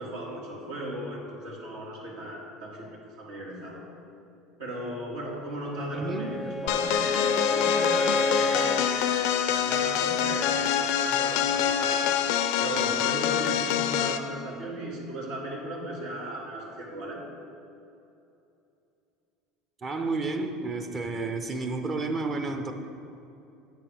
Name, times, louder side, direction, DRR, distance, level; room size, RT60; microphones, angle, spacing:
voice 1, 0.0-3.8 4.6-12.2 12.6-17.2, right 1 dB, 85° right, -4 dB, 1.8 m, -37 dB
Bowed string instrument, 5.7-8.9, left 2 dB, 10° left, 0.4 m, -30 dB
voice 2, 5.9-6.4 19.8-22.7, right 3 dB, 35° right, 5 dB, 0.6 m, -31 dB
sound 1, 6.7-14.3, left 9 dB, 75° left, 0.4 m, -25 dB
8.5 x 3.4 x 6.1 m, 2.7 s
supercardioid pair, 95°, 0 cm